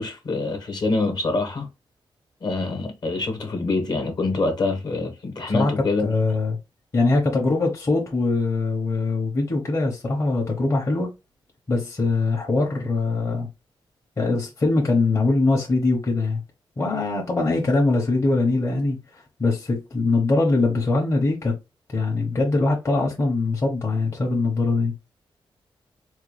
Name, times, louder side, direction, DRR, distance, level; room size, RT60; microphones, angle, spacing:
voice 1, 0.0-1.7 2.4-6.1, left 3 dB, 50° left, 1.2 m, -25 dB
voice 2, 6.0-6.6 6.9-11.1 11.7-13.5 14.2-16.4 16.8-21.6 21.9-24.9, left 3 dB, 30° left, 0.9 m, -22 dB
4.3 x 2.3 x 3.1 m
wide cardioid pair, 175°, 9 cm